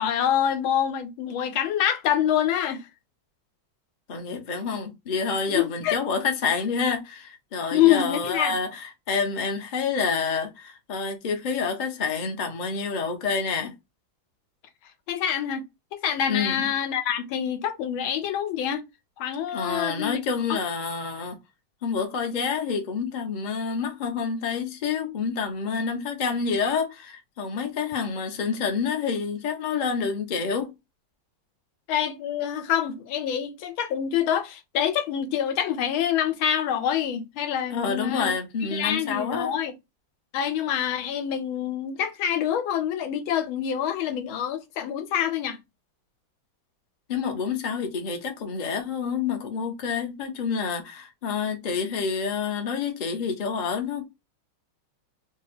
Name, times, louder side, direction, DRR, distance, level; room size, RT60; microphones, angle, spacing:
voice 1, 0.0-2.9 5.5-5.9 7.7-8.6 15.1-15.6 15.9-18.8 19.2-20.2 20.5-20.6 31.9-38.3 38.7-39.7 40.3-45.6, left 9 dB, 85° left, 1.6 m, -26 dB
voice 2, 4.1-13.7 16.3-16.7 19.5-21.4 21.8-30.7 37.7-39.6 47.1-54.0, left 5 dB, 45° left, 0.6 m, -28 dB
3.7 x 2.3 x 4.2 m
omnidirectional pair, 2.2 m